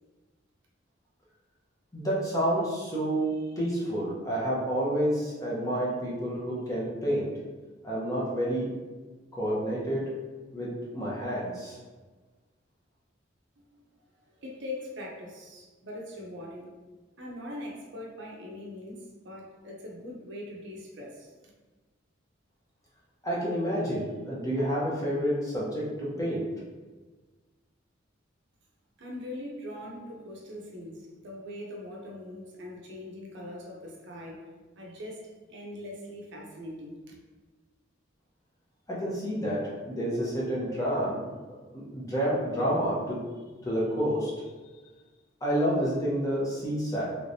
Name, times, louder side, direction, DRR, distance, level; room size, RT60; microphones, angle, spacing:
voice 1, 1.9-3.3 3.6-7.3 7.8-8.7 9.3-10.0 10.5-11.8 23.2-26.5 38.9-41.2 41.7-43.2 43.6-44.3 45.4-47.0, equal, 15° left, -6 dB, 0.8 m, -29 dB
voice 2, 14.4-16.7 17.2-21.3 29.0-34.4 34.7-35.2 35.5-37.1, left 1 dB, 65° right, -1 dB, 0.6 m, -41 dB
3.2 x 3.2 x 2.7 m, 1.3 s
head